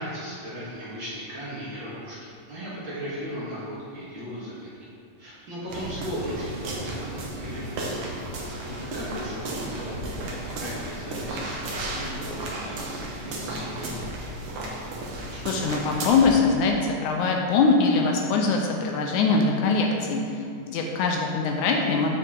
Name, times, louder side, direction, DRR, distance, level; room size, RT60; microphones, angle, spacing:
voice 1, 0.0-4.7 5.2-8.0 8.4-13.9 15.3-15.4 16.8-16.9, equal, 50° right, -9 dB, 1.5 m, -37 dB
sound 1, 5.7-16.4, right 1 dB, 80° right, 1.3 m, -34 dB
voice 2, 15.5-22.1, left 4 dB, 80° left, 1 dB, 1.8 m, -23 dB
6.8 x 6.1 x 3.7 m, 2.4 s
omnidirectional pair, 4.0 m